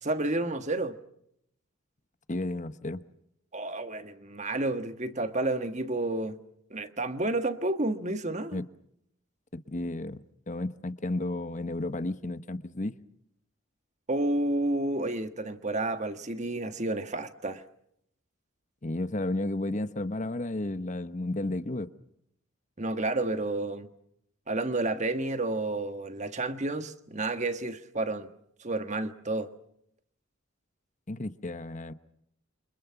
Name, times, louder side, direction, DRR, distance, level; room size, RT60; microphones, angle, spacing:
voice 1, 0.0-1.0 3.5-6.4 6.7-8.6 14.1-17.6 22.8-23.9 24.5-28.3 28.6-29.5, right 2 dB, 35° right, 1.6 m, -30 dB
voice 2, 2.3-3.0 8.5-8.6 9.5-13.0 18.8-21.9 31.1-31.9, left 2 dB, 35° left, 1.0 m, -33 dB
29.0 x 25.5 x 5.8 m
head